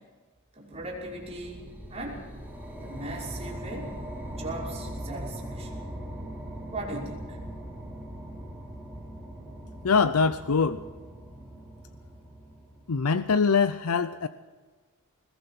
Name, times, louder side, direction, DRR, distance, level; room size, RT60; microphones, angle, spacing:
voice 1, 0.5-2.2 2.8-3.9 4.4-5.9 6.7-7.4, right 1 dB, 30° right, -3 dB, 5.8 m, -38 dB
sound 1, 0.7-13.2, right 1 dB, 10° right, 3.5 m, -40 dB
voice 2, 9.8-10.8 12.9-14.3, left 5 dB, 90° left, 12 dB, 0.6 m, -23 dB
21.5 x 20.5 x 6.0 m, 1.4 s
head